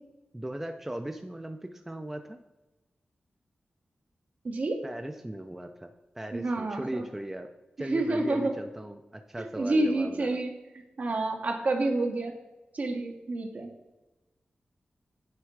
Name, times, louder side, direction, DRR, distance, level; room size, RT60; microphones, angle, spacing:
voice 1, 0.3-2.4 4.8-5.9 6.2-7.5 7.8-10.4, right 1 dB, 10° right, 5 dB, 0.4 m, -38 dB
voice 2, 4.4-4.8 6.3-7.0 7.9-8.5 9.6-10.5 11.0-12.4 12.7-13.7, right 2 dB, 55° right, 3 dB, 1.0 m, -28 dB
9.6 x 3.5 x 4.6 m, 1.1 s
wide cardioid pair, 145°, 3 cm